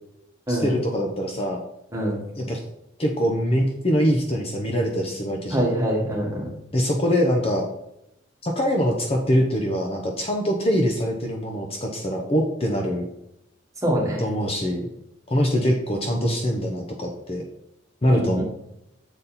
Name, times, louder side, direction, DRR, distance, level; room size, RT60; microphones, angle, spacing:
voice 1, 0.5-1.6 2.4-2.6 3.0-5.7 6.7-7.7 8.4-13.1 14.2-14.8 15.3-17.4 18.0-18.4, equal, 30° left, 1 dB, 0.7 m, -23 dB
voice 2, 1.9-2.2 5.5-6.5 13.8-14.2 18.1-18.4, right 1 dB, 15° right, -3 dB, 1.7 m, -24 dB
7.1 x 4.1 x 4.1 m, 0.82 s
head